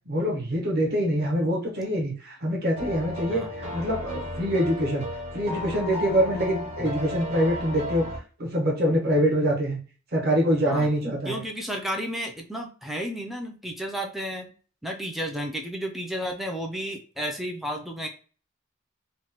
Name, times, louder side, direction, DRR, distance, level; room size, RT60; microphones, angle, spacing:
voice 1, 0.0-5.1 5.3-8.0 8.4-9.8 10.1-11.4, equal, 50° right, -1 dB, 1.0 m, -25 dB
sound 1, 2.8-8.2, left 1 dB, 30° right, 0.7 m, -34 dB
voice 2, 11.2-14.5 14.8-18.1, equal, ahead, 1 dB, 0.3 m, -32 dB
3.1 x 2.2 x 2.9 m, 0.38 s
head